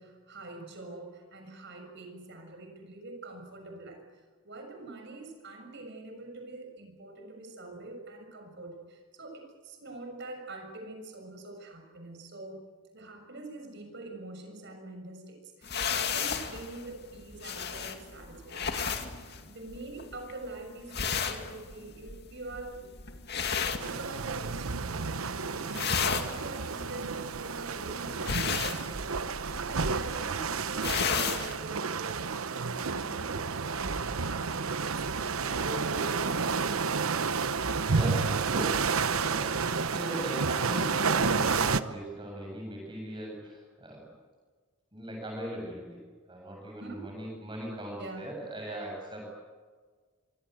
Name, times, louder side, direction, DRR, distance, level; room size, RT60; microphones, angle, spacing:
voice 1, 0.0-12.6 12.9-19.0 19.4-22.8 23.6-29.0 29.4-37.0 46.8-47.1 48.0-48.3, right 2 dB, 55° right, 4 dB, 6.7 m, -44 dB
sound 1, 15.6-24.6 24.9-25.3 25.6-31.5, left 6 dB, 50° left, 2.3 m, -34 dB
sound 2, 23.8-41.8, right 5 dB, 85° right, 1.0 m, -30 dB
voice 2, 37.6-44.0 44.9-46.0 46.3-49.3, right 1 dB, 25° right, -1 dB, 7.5 m, -39 dB
26.0 x 24.5 x 8.1 m, 1.5 s
head